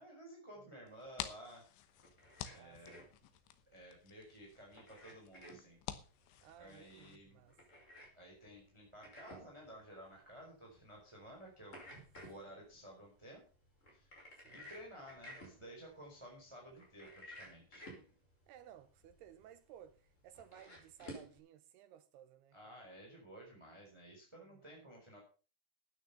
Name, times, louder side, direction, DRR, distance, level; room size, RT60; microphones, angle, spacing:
voice 1, 0.0-1.7 2.5-3.0 3.7-5.8 6.6-7.4 8.1-11.8 12.2-13.4 13.9-17.9 22.5-25.2, right 1 dB, 5° right, 4.0 m, -54 dB
sound 1, 0.9-7.2, left 11 dB, 80° left, 3.2 m, -50 dB
sound 2, 1.9-21.4, equal, 15° left, 5.3 m, -56 dB
voice 2, 2.5-3.1 6.4-7.6 12.5-12.7 14.3-14.7 18.5-22.9 24.4-24.9, right 10 dB, 75° right, 2.5 m, -59 dB
13.0 x 9.3 x 5.7 m
omnidirectional pair, 5.4 m